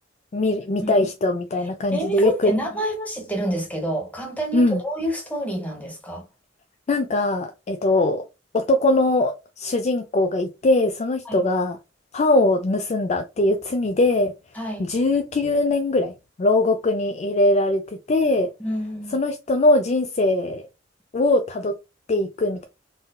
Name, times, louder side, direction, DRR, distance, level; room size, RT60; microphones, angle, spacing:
voice 1, 0.3-2.5 4.5-4.8 6.9-8.2 8.5-11.8 12.1-14.3 14.8-17.8 18.1-18.5 19.1-20.6 21.1-21.7 22.1-22.6, left 2 dB, 35° left, 0.4 m, -21 dB
voice 2, 1.9-6.2 11.2-11.4 14.5-14.9 18.6-19.2, right 1 dB, 10° left, 1.0 m, -28 dB
3.8 x 2.6 x 2.2 m
head